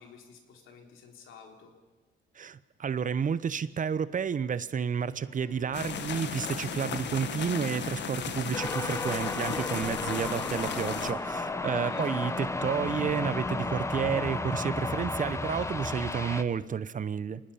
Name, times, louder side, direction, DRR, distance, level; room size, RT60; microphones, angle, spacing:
voice 1, 0.0-1.7 11.7-12.1, left 5 dB, 85° left, 2 dB, 3.6 m, -51 dB
voice 2, 2.4-17.4, right 7 dB, 40° right, 16 dB, 0.8 m, -31 dB
sound 1, 4.9-14.4, right 4 dB, 85° right, 3.6 m, -52 dB
sound 2, 5.7-11.1, left 7 dB, 60° left, 1.5 m, -35 dB
sound 3, 8.5-16.4, left 2 dB, 15° left, 1.0 m, -33 dB
26.5 x 19.0 x 5.7 m, 1.3 s
cardioid pair, 90°, 20 cm